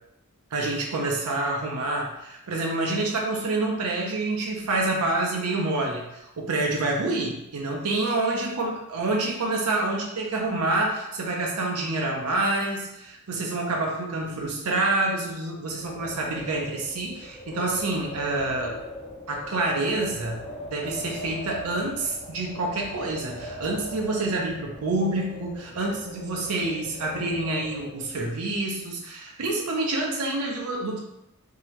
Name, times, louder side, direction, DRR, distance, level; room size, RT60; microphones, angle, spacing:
voice 1, 0.5-18.8 19.3-20.4 20.7-31.0, right 2 dB, 85° right, 0 dB, 0.6 m, -27 dB
Wind, 15.7-28.3, left 1 dB, 30° left, 0.9 m, -40 dB
3.7 x 2.8 x 3.0 m, 0.84 s
head